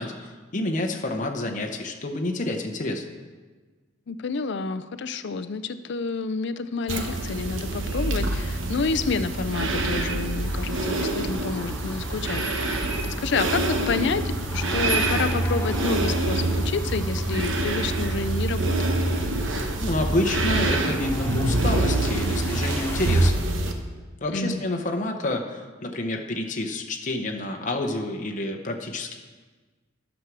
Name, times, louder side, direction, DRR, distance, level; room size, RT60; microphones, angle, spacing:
voice 1, 0.0-3.0 19.8-23.4 24.2-29.2, left 2 dB, 40° left, 2 dB, 0.8 m, -28 dB
voice 2, 4.1-12.4 13.2-14.2 14.5-18.9 24.3-24.6, left 4 dB, 60° left, 12 dB, 0.5 m, -29 dB
sound 1, 6.9-23.7, right 2 dB, 70° right, 1.0 m, -26 dB
sound 2, 10.5-23.3, left 3 dB, 10° left, 0.6 m, -40 dB
11.5 x 6.2 x 6.1 m, 1.4 s
head